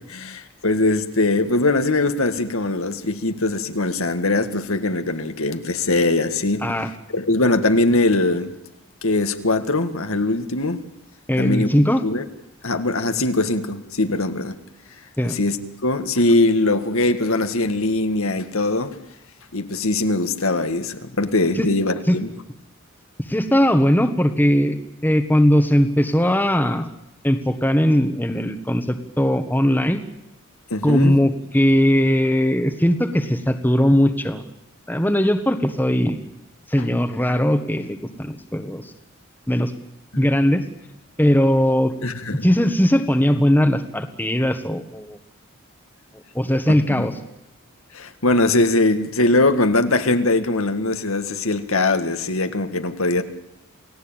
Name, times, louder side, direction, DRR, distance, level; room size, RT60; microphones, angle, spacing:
voice 1, 0.0-6.7 7.1-8.5 9.0-10.8 11.4-11.7 12.0-12.2 12.6-14.6 15.2-15.6 15.8-19.0 19.5-22.3 30.7-31.1 40.1-40.3 42.0-42.5 46.9-47.1 47.9-53.2, left 2 dB, 75° left, 1.9 m, -21 dB
voice 2, 11.3-12.0 15.2-15.4 21.6-21.7 22.1-22.2 23.3-24.8 25.0-26.9 27.2-30.0 30.8-34.4 34.9-36.2 36.7-38.9 39.5-39.7 40.2-40.6 41.2-41.9 42.3-45.2 46.1-47.2, equal, 10° left, 1.5 m, -19 dB
29.0 x 18.0 x 9.0 m
head